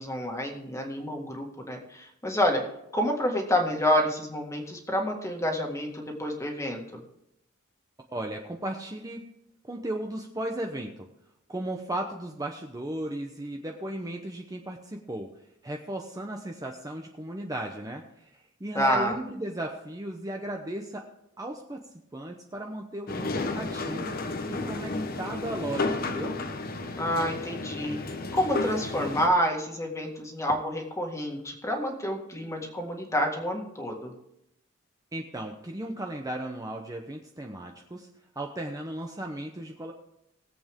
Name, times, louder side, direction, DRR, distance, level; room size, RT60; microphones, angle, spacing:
voice 1, 0.0-2.6 2.9-7.0 18.8-19.1 26.9-28.0 28.3-34.1, equal, 15° left, 2 dB, 1.9 m, -28 dB
voice 2, 8.1-9.3 9.6-11.1 11.5-15.3 15.6-21.1 21.4-21.8 22.1-24.2 24.5-26.4 35.1-38.1 38.4-39.9, right 1 dB, 20° right, 2 dB, 0.9 m, -35 dB
sound 1, 23.1-29.3, left 3 dB, 50° left, 1.0 m, -32 dB
20.0 x 7.9 x 3.6 m, 0.81 s
head